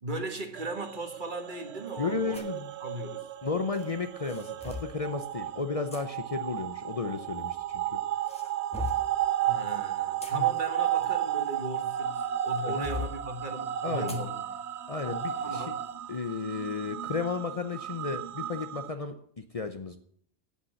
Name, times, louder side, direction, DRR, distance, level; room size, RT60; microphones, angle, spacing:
voice 1, 0.0-2.5 2.8-3.3 9.5-14.4 15.4-15.8, right 1 dB, 45° right, 1.6 m, -37 dB
sound 1, 0.6-18.9, right 11 dB, 80° right, 1.0 m, -33 dB
voice 2, 2.0-2.7 3.4-8.0 10.3-10.5 12.6-12.9 13.8-14.2 14.9-15.7 16.1-20.0, left 4 dB, 40° left, 0.7 m, -33 dB
sound 2, 2.3-2.6 3.7-5.0 5.9-6.0 7.2-7.8 8.2-9.1 9.9-12.0 12.5-13.2 14.1-14.3 14.7-14.8 15.4-15.6, left 4 dB, 5° left, 1.6 m, -40 dB
8.7 x 8.4 x 9.3 m
omnidirectional pair, 1.1 m